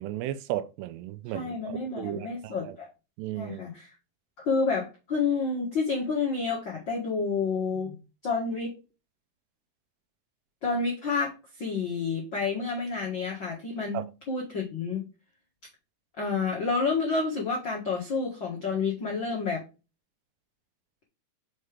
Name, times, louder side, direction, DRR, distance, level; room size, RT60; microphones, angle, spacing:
voice 1, 0.0-2.8 3.2-3.6 13.9-14.0, right 13 dB, 85° right, 2.7 m, -35 dB
voice 2, 1.3-2.9 3.3-3.9 4.4-8.0 8.2-8.8 10.6-15.0 16.2-19.6, left 4 dB, 85° left, 1.0 m, -29 dB
6.5 x 4.7 x 3.4 m
omnidirectional pair, 4.9 m